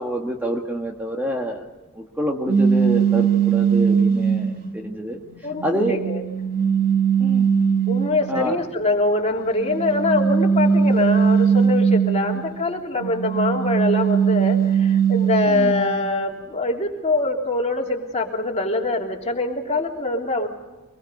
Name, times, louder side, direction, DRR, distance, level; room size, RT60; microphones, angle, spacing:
voice 1, 0.0-1.6 1.9-5.2 5.6-6.0 7.2-7.5 8.3-8.6 15.5-15.7, equal, 10° right, 1 dB, 1.6 m, -27 dB
sound 1, 2.5-4.7 5.3-8.4 9.6-12.5 13.0-15.9, right 6 dB, 40° right, 2.6 m, -20 dB
voice 2, 5.4-6.2 7.9-20.5, left 2 dB, 30° left, 0 dB, 3.3 m, -24 dB
25.0 x 21.5 x 5.4 m, 1.1 s
head